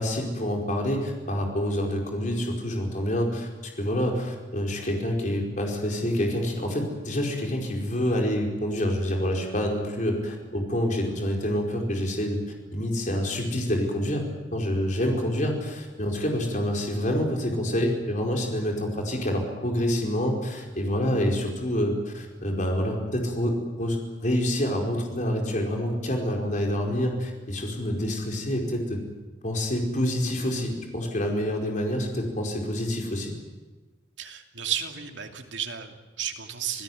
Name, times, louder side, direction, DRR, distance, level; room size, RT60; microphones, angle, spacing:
voice 1, 0.0-3.5 3.8-12.4 12.7-14.3 14.5-29.0 29.4-33.3, equal, 45° left, 1 dB, 4.9 m, -27 dB
voice 2, 34.2-36.8, right 9 dB, 85° right, 4 dB, 2.8 m, -33 dB
27.5 x 16.5 x 9.4 m, 1.3 s
head